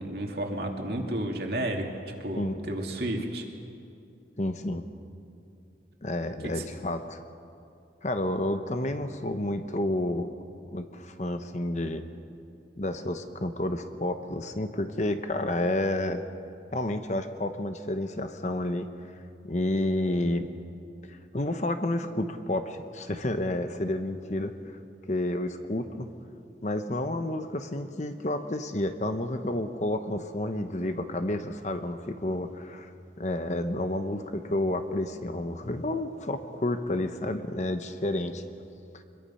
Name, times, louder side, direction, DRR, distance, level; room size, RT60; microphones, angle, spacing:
voice 1, 0.0-3.4 6.4-6.7, right 1 dB, 60° right, 2 dB, 2.4 m, -32 dB
voice 2, 4.4-4.8 6.0-7.2 8.0-10.3 10.7-12.0 12.8-16.2 16.7-18.9 19.4-20.5 21.1-24.8 25.1-26.1 26.6-32.9 33.2-38.4 38.9-39.0, left 1 dB, 40° left, 8 dB, 1.0 m, -30 dB
25.0 x 21.5 x 5.6 m, 2.6 s
head